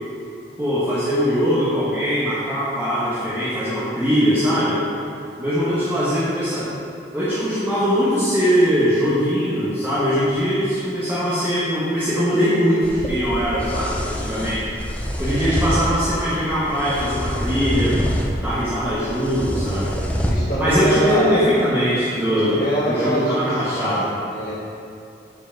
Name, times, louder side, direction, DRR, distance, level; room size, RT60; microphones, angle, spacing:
voice 1, 0.6-4.8 5.4-6.7 7.1-14.7 15.2-18.0 18.4-20.0 20.6-22.6 22.9-24.1, equal, 10° right, -11 dB, 1.2 m, -21 dB
sound 1, 12.8-20.3, equal, 10° left, 0.6 m, -26 dB
voice 2, 20.3-21.5 22.3-24.5, right 1 dB, 30° left, -14 dB, 1.6 m, -25 dB
7.6 x 4.9 x 4.5 m, 2.5 s
head